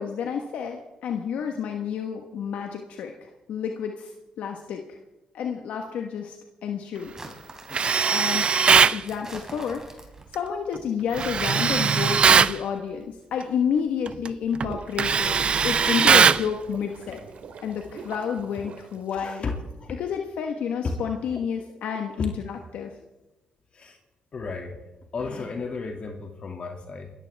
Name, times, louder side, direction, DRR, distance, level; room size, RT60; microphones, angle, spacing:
voice 1, 0.0-4.1 4.4-5.0 5.3-6.4 6.6-7.5 8.0-8.6 8.9-10.0 10.3-17.2 17.6-19.5 20.0-22.9, left 7 dB, 75° left, 3 dB, 1.3 m, -30 dB
sound 1, 7.1-8.1 9.1-10.3 11.0-11.9, right 2 dB, 25° right, 3.7 m, -43 dB
voice 2, 7.7-8.2 19.1-19.5 19.8-19.9 20.8-20.9 22.2-22.3 23.7-24.0 24.3-24.7 25.1-27.1, left 4 dB, 50° left, 2 dB, 2.4 m, -33 dB
Tools, 7.7-9.0 11.2-12.6 14.1-14.3 14.6-16.5, right 6 dB, 45° right, 0.5 m, -19 dB
sound 2, 14.3-19.7, right 5 dB, 65° right, 2.2 m, -44 dB
26.5 x 14.0 x 3.5 m, 1.0 s
supercardioid pair, 70°, 2 cm